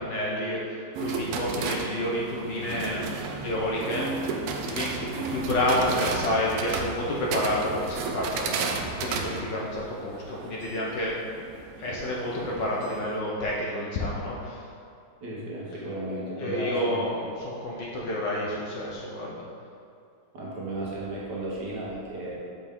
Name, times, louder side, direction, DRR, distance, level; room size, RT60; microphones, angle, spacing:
voice 1, 0.0-4.4 4.6-11.2 11.8-14.6 16.4-19.4, left 1 dB, 65° left, -4 dB, 1.3 m, -29 dB
sound 1, 0.9-13.2, right 4 dB, 85° right, 1.6 m, -33 dB
voice 2, 15.2-17.0 17.4-17.5 20.3-22.3, right 1 dB, 55° right, -6 dB, 1.7 m, -34 dB
6.8 x 5.5 x 3.6 m, 2.5 s
omnidirectional pair, 2.4 m